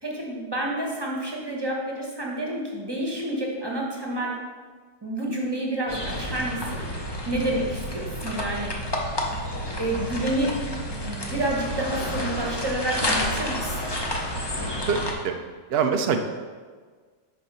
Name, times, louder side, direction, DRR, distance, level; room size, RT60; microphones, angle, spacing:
voice 1, 0.0-4.4 5.0-6.8 7.3-8.7 9.8-10.5 10.8-13.9, right 1 dB, 20° right, -2 dB, 1.0 m, -29 dB
sound 1, 5.9-15.1, left 1 dB, 25° left, 0.6 m, -30 dB
voice 2, 14.9-15.3 15.7-16.2, right 6 dB, 90° right, 6 dB, 0.5 m, -24 dB
6.3 x 4.6 x 5.5 m, 1.5 s
omnidirectional pair, 1.7 m